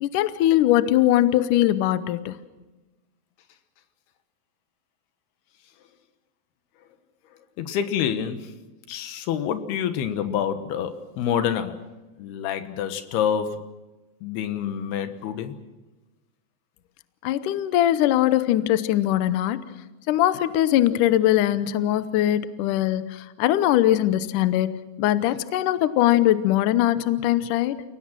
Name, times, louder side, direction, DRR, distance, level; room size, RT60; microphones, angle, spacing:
voice 1, 0.0-2.4 17.2-19.6 20.1-24.7 25.0-27.8, left 13 dB, 90° left, 13 dB, 1.8 m, -21 dB
voice 2, 7.6-8.5 8.9-11.9 12.2-13.6 14.2-15.6, left 8 dB, 75° left, 10 dB, 3.1 m, -27 dB
29.0 x 18.5 x 6.1 m, 1.1 s
omnidirectional pair, 4.9 m